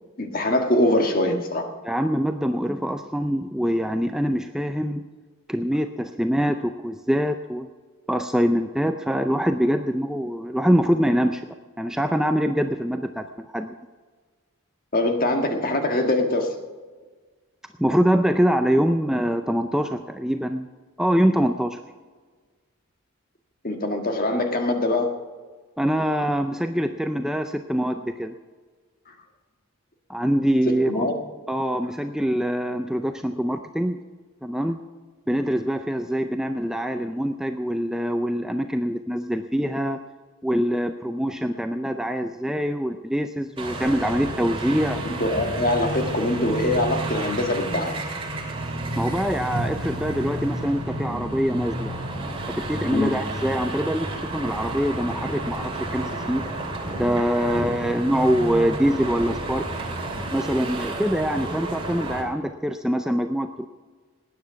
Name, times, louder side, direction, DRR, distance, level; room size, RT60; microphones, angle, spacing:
voice 1, 0.2-1.7 14.9-16.5 23.6-25.1 30.9-31.1 45.0-47.9 52.9-53.1, left 1 dB, 40° left, 5 dB, 1.7 m, -23 dB
voice 2, 1.8-5.0 5.5-7.7 8.1-13.8 17.8-20.7 21.0-21.8 25.8-28.3 30.1-31.1 31.5-34.0 34.4-34.8 35.3-40.0 40.4-45.0 49.0-51.9 52.5-56.4 57.0-59.7 60.3-63.6, equal, 5° right, 6 dB, 0.4 m, -24 dB
sound 1, 43.6-62.2, right 1 dB, 25° right, 2.4 m, -31 dB
19.0 x 9.7 x 5.8 m, 1.4 s
head